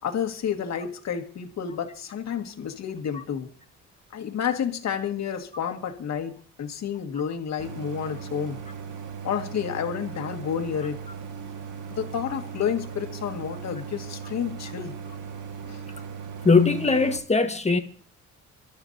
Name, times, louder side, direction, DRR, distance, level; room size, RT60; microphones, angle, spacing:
voice 1, 0.0-3.5 4.1-8.6 9.2-11.0 11.9-14.9 15.7-15.8, left 8 dB, 60° left, 2.0 m, -30 dB
Idling, 7.6-17.2, right 6 dB, 85° right, 1.9 m, -38 dB
voice 2, 16.4-17.8, left 4 dB, 20° left, 1.5 m, -20 dB
25.0 x 12.5 x 2.8 m
cardioid pair, 90°, 30 cm